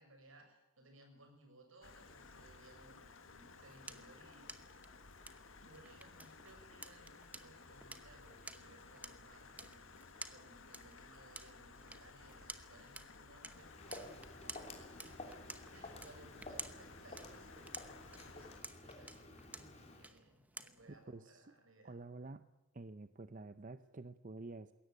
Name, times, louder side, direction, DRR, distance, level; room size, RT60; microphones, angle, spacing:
voice 1, 0.0-4.9 5.6-9.9 10.3-22.0, right 1 dB, 75° right, 5 dB, 6.6 m, -63 dB
Stream, 1.8-18.6, left 4 dB, 75° left, 2.0 m, -57 dB
sound 1, 3.3-21.1, right 2 dB, 5° right, 1.0 m, -54 dB
Walk footsteps, 13.5-20.1, left 2 dB, 30° left, 3.2 m, -52 dB
voice 2, 20.9-21.5 21.8-22.4 22.7-24.7, right 2 dB, 40° right, 11 dB, 0.7 m, -49 dB
21.5 x 17.5 x 9.2 m, 0.98 s
head